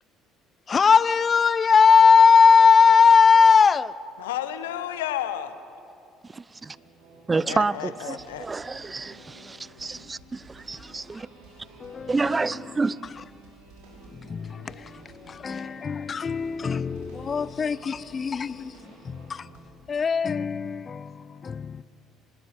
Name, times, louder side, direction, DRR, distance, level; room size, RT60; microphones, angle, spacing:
voice 1, 0.7-3.9 11.1-11.2 11.8-12.5 14.1-19.5 19.9-21.8, left 5 dB, 35° left, 0.7 m, -20 dB
voice 2, 4.2-5.6 7.5-8.5, left 11 dB, 80° left, 1.0 m, -31 dB
sound 1, 6.6-19.6, right 1 dB, 75° right, 6.1 m, -50 dB
voice 3, 7.3-11.3 12.1-13.0, right 3 dB, 25° right, 0.6 m, -28 dB
26.5 x 19.5 x 7.5 m
hypercardioid pair, 55°, 0 cm